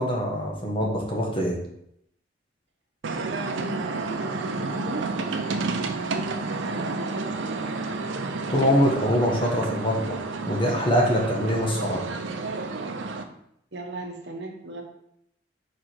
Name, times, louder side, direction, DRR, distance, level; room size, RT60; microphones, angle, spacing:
voice 1, 0.0-1.6 8.5-12.1, equal, 25° left, -1 dB, 1.2 m, -24 dB
sound 1, 3.0-13.2, right 3 dB, 80° right, 0.6 m, -30 dB
voice 2, 3.4-5.1 5.7-7.8 13.7-14.8, right 2 dB, 65° right, 1 dB, 1.1 m, -37 dB
4.9 x 4.8 x 4.4 m, 0.74 s
head